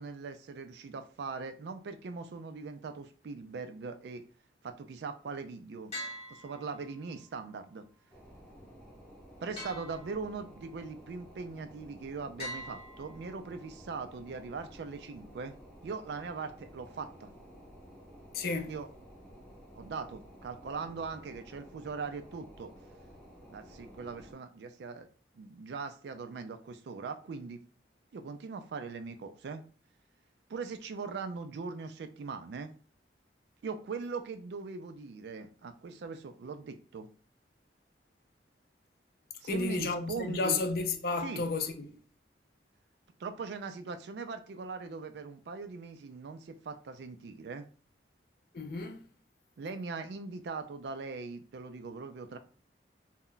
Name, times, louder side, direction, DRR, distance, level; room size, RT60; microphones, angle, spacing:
voice 1, 0.0-4.3 4.6-5.9 6.3-7.9 9.4-15.5 15.8-17.3 18.7-18.9 19.7-22.7 23.5-25.1 25.3-27.6 28.1-29.6 30.5-32.7 33.6-37.1 39.4-40.6 41.2-41.4 43.2-47.7 49.6-52.4, right 4 dB, 70° right, 0.3 m, -40 dB
sound 1, 5.9-7.2 9.6-10.6 12.4-13.6, left 1 dB, 35° left, 1.0 m, -44 dB
sound 2, 8.1-24.3, equal, 5° left, 0.6 m, -53 dB
voice 2, 18.3-18.7 39.4-42.0 48.5-49.1, left 3 dB, 55° left, 0.4 m, -32 dB
2.2 x 2.1 x 3.7 m
head